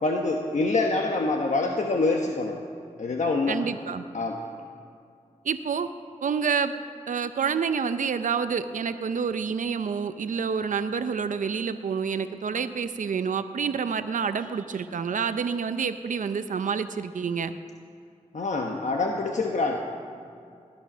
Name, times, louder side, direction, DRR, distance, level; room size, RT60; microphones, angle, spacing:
voice 1, 0.0-2.6 3.0-3.6 4.1-4.4 18.3-19.8, left 3 dB, 65° left, 2 dB, 1.2 m, -25 dB
voice 2, 3.5-4.0 5.4-5.9 6.2-6.7 7.1-17.5, right 6 dB, 75° right, 10 dB, 0.6 m, -28 dB
19.0 x 11.5 x 6.2 m, 2.4 s
cardioid pair, 55°, 13 cm